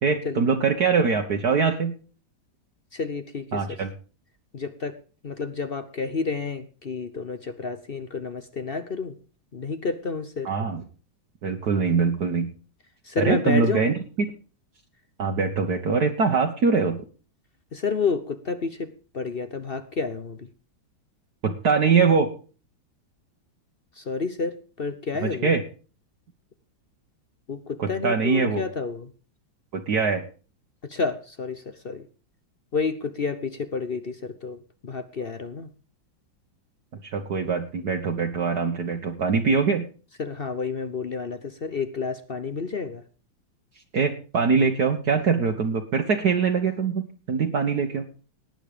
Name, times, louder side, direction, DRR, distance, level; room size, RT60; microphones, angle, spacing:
voice 1, 0.0-1.9 3.5-3.9 10.4-10.8 11.4-12.5 13.2-14.0 15.2-17.0 21.4-22.3 25.2-25.6 27.8-28.6 29.7-30.2 37.0-39.9 43.9-48.0, right 5 dB, 55° right, 3 dB, 1.7 m, -23 dB
voice 2, 2.9-3.8 4.5-5.0 5.2-9.2 9.5-10.5 13.0-13.8 17.7-18.9 19.1-20.5 24.0-25.5 27.5-29.1 30.9-32.1 32.7-35.7 40.2-43.0, left 4 dB, 50° left, 12 dB, 0.7 m, -30 dB
18.5 x 9.2 x 5.0 m, 0.38 s
omnidirectional pair, 2.2 m